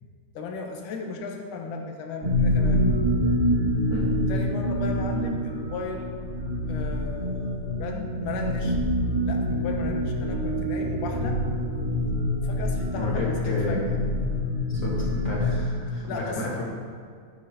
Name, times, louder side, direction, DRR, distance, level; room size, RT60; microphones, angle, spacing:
voice 1, 0.3-2.8 4.3-6.1 6.7-8.8 9.3-11.4 12.4-14.0 16.1-16.6, left 4 dB, 85° left, 2 dB, 2.7 m, -35 dB
sound 1, 2.2-15.6, left 1 dB, 30° right, 2.0 m, -26 dB
voice 2, 13.0-13.9 14.8-16.6, left 2 dB, 55° left, -4 dB, 1.4 m, -32 dB
13.0 x 10.0 x 2.9 m, 2.1 s
omnidirectional pair, 3.7 m